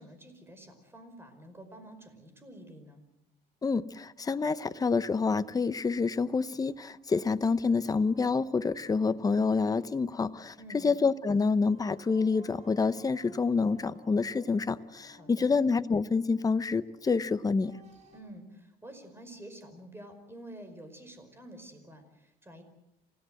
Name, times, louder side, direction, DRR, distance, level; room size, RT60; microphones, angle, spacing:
voice 1, 0.0-3.0 10.6-10.9 15.2-15.5 18.1-22.6, right 1 dB, 15° right, 5.2 m, -49 dB
voice 2, 3.6-10.6 10.8-17.7, left 4 dB, 20° left, 0.8 m, -27 dB
sound 1, 6.5-18.2, equal, 40° right, 7.4 m, -58 dB
27.5 x 17.0 x 7.8 m
cardioid pair, 110°, 17 cm